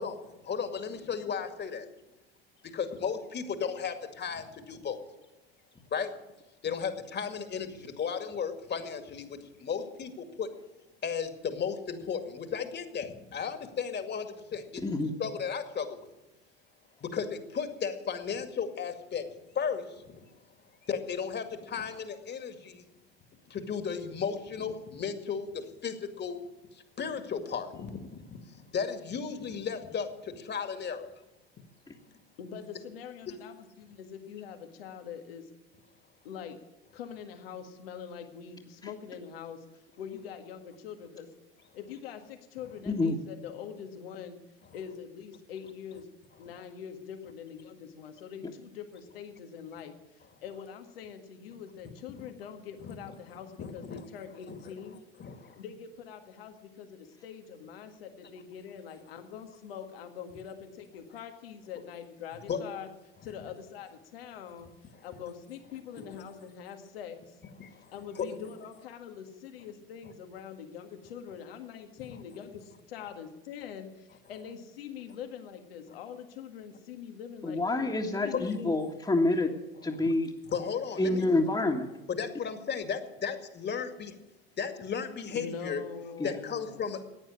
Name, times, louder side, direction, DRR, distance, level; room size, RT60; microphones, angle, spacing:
voice 1, 0.0-1.9 2.7-5.0 5.9-6.1 6.6-10.5 11.0-14.8 15.2-16.1 17.0-19.3 19.5-20.3 20.8-22.8 23.5-26.4 26.7-31.1 33.3-33.4 52.2-52.3 52.8-53.0 53.6-54.0 54.5-54.6 55.2-55.6 62.5-62.6 66.1-66.2 67.6-67.9 80.5-81.3 82.1-84.2 84.6-85.8 86.2-87.0, left 6 dB, 35° left, 7 dB, 2.2 m, -35 dB
voice 2, 14.8-15.1 31.9-32.0 42.9-43.2 77.4-79.5 79.8-80.3 81.0-81.9 86.2-86.3, left 2 dB, 15° left, -2 dB, 1.8 m, -27 dB
voice 3, 32.4-35.5 36.2-36.6 36.9-41.3 41.7-44.4 44.7-46.1 46.4-55.0 55.5-62.9 63.2-67.4 67.7-78.8 85.3-86.8, left 7 dB, 80° left, 6 dB, 1.8 m, -44 dB
15.0 x 9.4 x 8.6 m, 1.0 s
hypercardioid pair, 75°, 29 cm